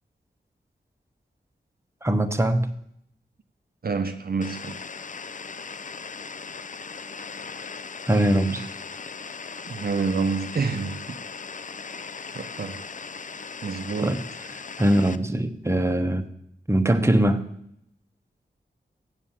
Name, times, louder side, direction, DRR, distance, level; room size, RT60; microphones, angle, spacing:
voice 1, 2.0-2.7 8.1-8.7 14.0-14.2 14.8-16.3 16.7-17.5, right 1 dB, 15° right, 1.0 m, -22 dB
voice 2, 3.8-4.8 9.7-11.2 12.3-12.8 13.6-14.3, right 4 dB, 55° right, 0.6 m, -28 dB
sound 1, 4.4-15.2, left 5 dB, 45° left, 0.5 m, -38 dB
7.5 x 7.4 x 7.2 m
cardioid pair, 40°, 19 cm